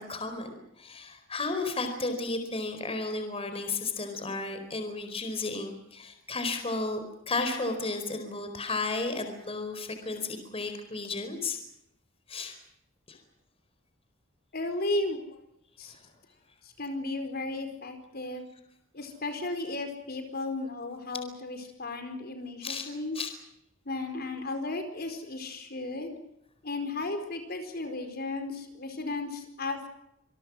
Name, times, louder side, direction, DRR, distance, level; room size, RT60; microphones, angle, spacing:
voice 1, 0.0-11.6 12.3-12.5 13.1-13.2 15.9-16.0 22.6-22.9 23.1-23.3, left 3 dB, 30° left, 7 dB, 4.4 m, -33 dB
voice 2, 14.5-15.4 15.8-16.0 16.6-18.5 18.9-23.2 23.8-26.1 26.6-29.9, left 2 dB, 50° left, 7 dB, 4.6 m, -34 dB
27.0 x 22.0 x 6.3 m, 0.77 s
head